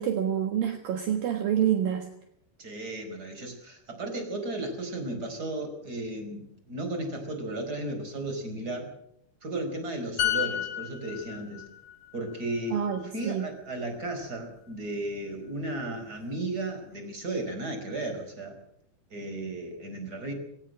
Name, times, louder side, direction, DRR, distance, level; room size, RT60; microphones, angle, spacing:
voice 1, 0.0-2.1 12.7-13.5, right 9 dB, 65° right, 6 dB, 3.1 m, -27 dB
voice 2, 2.6-8.9 9.4-11.6 12.1-12.8 13.1-18.6 19.1-20.3, right 2 dB, 25° right, 6 dB, 5.1 m, -34 dB
sound 1, 10.2-13.8 14.1-14.3, left 11 dB, 40° left, 7.0 m, -33 dB
21.0 x 18.0 x 7.7 m, 0.70 s
omnidirectional pair, 4.7 m